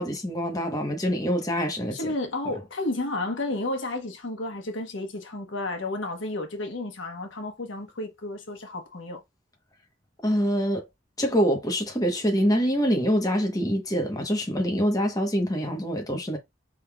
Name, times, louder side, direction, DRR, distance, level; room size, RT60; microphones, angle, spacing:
voice 1, 0.0-2.1 10.2-10.9 11.2-16.4, equal, 20° left, 1.0 m, -25 dB
voice 2, 1.9-9.2, left 2 dB, 90° left, 1.2 m, -32 dB
5.2 x 3.6 x 2.3 m
head